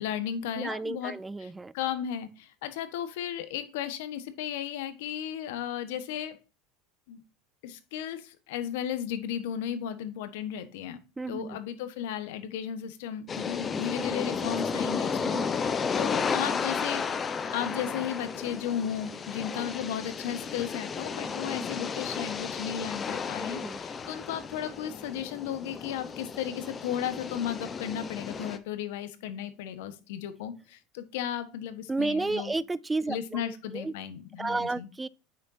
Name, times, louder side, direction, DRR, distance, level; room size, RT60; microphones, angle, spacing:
voice 1, 0.0-1.1 1.4-6.4 7.1-7.2 7.6-11.0 11.3-17.0 17.5-32.5 33.1-34.9, left 9 dB, 80° left, 1.3 m, -35 dB
voice 2, 0.6-1.7 11.2-11.6 15.2-15.5 19.5-19.7 23.4-23.8 31.9-33.9 34.4-35.1, right 3 dB, 10° right, 0.3 m, -32 dB
sound 1, 13.3-28.6, left 5 dB, 25° left, 0.9 m, -33 dB
8.8 x 6.6 x 2.7 m
supercardioid pair, 115°, 0 cm